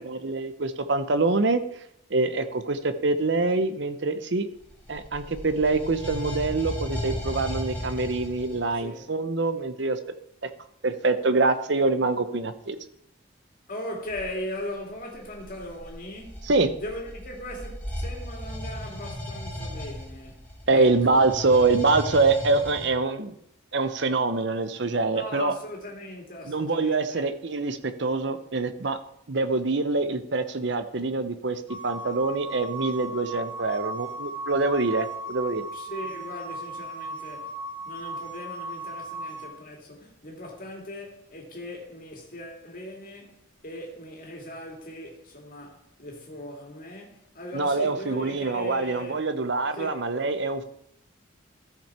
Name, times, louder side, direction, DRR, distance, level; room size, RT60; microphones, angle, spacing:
voice 1, 0.0-1.6 2.1-4.5 4.9-10.0 10.4-10.5 10.8-12.8 16.4-16.7 20.7-23.3 23.7-25.5 26.5-29.0 29.3-35.6 47.5-50.6, right 3 dB, 60° right, 0.8 m, -25 dB
sound 1, 4.6-8.7 14.1-14.3 15.1-22.9, equal, 10° left, 2.2 m, -36 dB
voice 2, 13.7-16.4 16.8-20.4 20.7-21.2 25.1-27.2 35.7-37.6 37.8-49.2 49.7-50.0, left 1 dB, 40° left, 2.3 m, -39 dB
sound 2, 31.7-39.4, right 2 dB, 10° right, 2.4 m, -36 dB
14.0 x 6.0 x 4.3 m
head